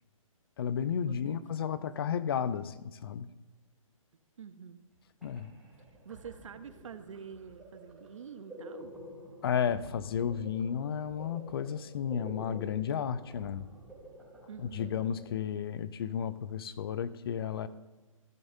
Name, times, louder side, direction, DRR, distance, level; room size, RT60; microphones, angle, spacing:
voice 1, 0.6-3.3 5.2-5.5 9.4-13.6 14.6-17.7, left 8 dB, 45° left, 15 dB, 0.5 m, -33 dB
voice 2, 1.1-1.7 4.4-4.8 6.0-8.9 14.5-15.1, right 7 dB, 65° right, 11 dB, 0.9 m, -47 dB
sound 1, 4.9-5.0 5.2-15.8, right 1 dB, 5° right, 2.8 m, -50 dB
16.0 x 7.0 x 2.8 m, 1.2 s
hypercardioid pair, 160°, 18 cm